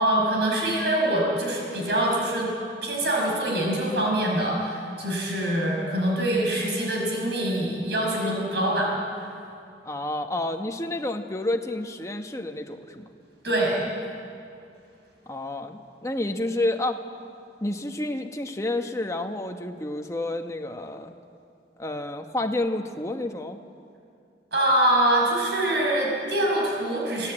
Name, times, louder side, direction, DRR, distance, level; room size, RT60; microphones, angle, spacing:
voice 1, 0.0-2.5 2.8-8.9 13.4-13.8 24.5-27.3, right 1 dB, 70° right, -1 dB, 5.5 m, -24 dB
voice 2, 9.8-13.0 15.3-17.0 17.6-21.1 21.8-23.6, left 1 dB, 15° left, 4 dB, 1.2 m, -30 dB
26.5 x 15.5 x 8.8 m, 2.5 s
head